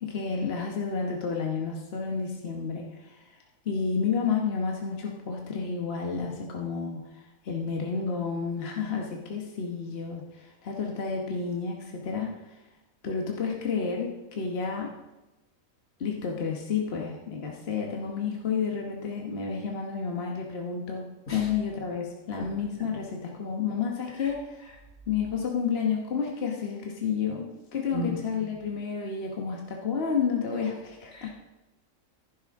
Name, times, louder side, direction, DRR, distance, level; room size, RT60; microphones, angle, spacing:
voice 1, 0.0-3.4 3.6-12.6 13.0-14.9 16.0-24.6 25.1-31.3, left 6 dB, 50° left, 0 dB, 1.4 m, -31 dB
voice 2, 21.3-21.5 24.2-24.3 27.9-28.1 31.1-31.3, right 2 dB, 75° left, -2 dB, 3.2 m, -35 dB
15.0 x 11.5 x 3.6 m, 1.1 s
omnidirectional pair, 1.4 m